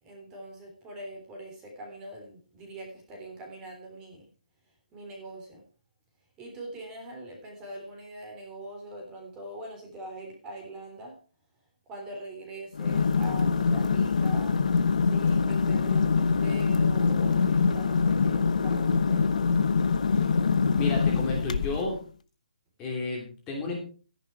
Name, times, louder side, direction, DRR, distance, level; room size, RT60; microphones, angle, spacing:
voice 1, 0.0-4.3 4.9-5.6 6.4-11.2 11.9-19.3, right 2 dB, 10° right, 1 dB, 3.5 m, -42 dB
sound 1, 12.7-22.0, left 5 dB, 55° left, 1.0 m, -24 dB
voice 2, 20.8-22.0 22.8-23.8, left 3 dB, 15° left, -1 dB, 2.9 m, -32 dB
14.0 x 10.5 x 4.8 m, 0.38 s
hypercardioid pair, 170°, 5 cm